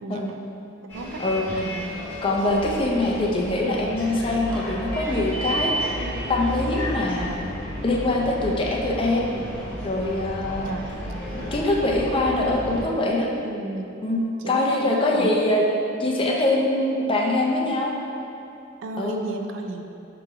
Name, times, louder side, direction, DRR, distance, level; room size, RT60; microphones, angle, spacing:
voice 1, 0.0-0.4 0.9-1.2 1.5-2.0 7.0-7.4 10.6-10.9 13.4-13.9 14.4-15.4 18.8-19.8, right 2 dB, 75° right, 4 dB, 0.4 m, -34 dB
Bus, 0.9-12.8, equal, 10° left, 1.0 m, -32 dB
voice 2, 2.2-6.0 6.3-7.4 7.8-9.3 9.8-10.7 11.3-13.3 14.0-14.2 14.5-15.6 16.0-17.9 19.0-19.2, left 2 dB, 30° left, -2 dB, 0.5 m, -23 dB
3.6 x 3.0 x 4.6 m, 2.6 s
head